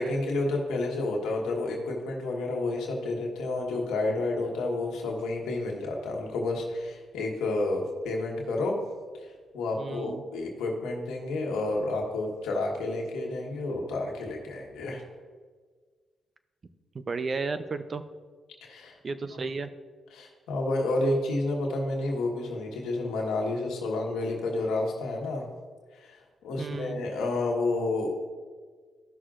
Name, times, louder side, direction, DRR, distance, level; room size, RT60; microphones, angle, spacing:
voice 1, 0.0-8.8 9.2-15.0 18.6-19.0 20.1-25.5 25.9-28.3, left 2 dB, 90° left, 0 dB, 1.3 m, -30 dB
voice 2, 9.8-10.2 16.9-18.0 19.0-19.7 26.6-27.0, right 4 dB, 45° right, 11 dB, 0.6 m, -33 dB
14.5 x 6.2 x 2.5 m, 1.5 s
cardioid pair, 65°, 0 cm